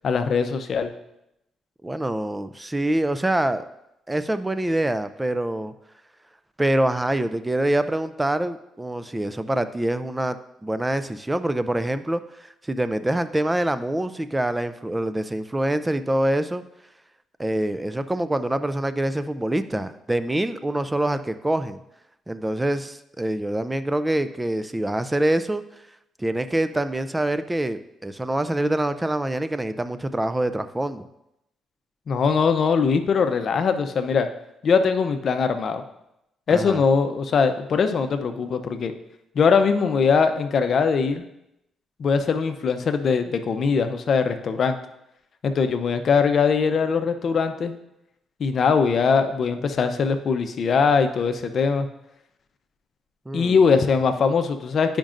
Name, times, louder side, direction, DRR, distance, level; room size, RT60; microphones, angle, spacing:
voice 1, 0.0-0.9 32.1-34.3 34.6-35.8 36.5-38.9 39.3-41.2 42.0-44.8 45.4-47.7 48.4-51.9 53.3-55.0, left 5 dB, 55° left, 8 dB, 0.6 m, -21 dB
voice 2, 1.8-3.6 4.1-5.7 6.6-10.4 10.6-16.6 17.4-21.8 22.3-25.6 26.2-31.1 36.5-36.8 53.3-53.6, right 1 dB, 10° right, 12 dB, 0.4 m, -25 dB
10.0 x 5.2 x 2.5 m, 0.84 s
cardioid pair, 90°, 0 cm